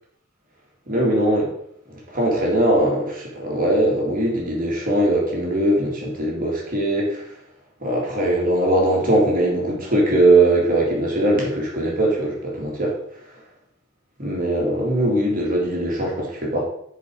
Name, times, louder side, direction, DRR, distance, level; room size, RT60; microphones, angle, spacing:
voice 1, 0.9-1.5 2.1-7.2 7.8-13.0 14.2-16.6, right 1 dB, 40° right, -2 dB, 2.5 m, -20 dB
7.0 x 5.0 x 4.8 m, 0.70 s
head